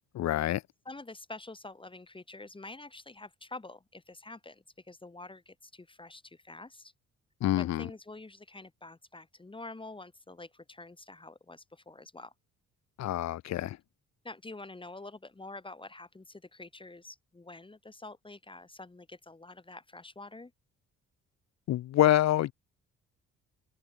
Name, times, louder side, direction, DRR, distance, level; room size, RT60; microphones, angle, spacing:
voice 1, 0.1-0.6 7.4-7.9 13.0-13.8 21.7-22.5, left 14 dB, 60° left, 0.6 m, -26 dB
voice 2, 0.9-6.9 7.6-12.3 14.2-20.5, left 2 dB, 15° left, 1.9 m, -47 dB
cardioid pair, 90°, 30 cm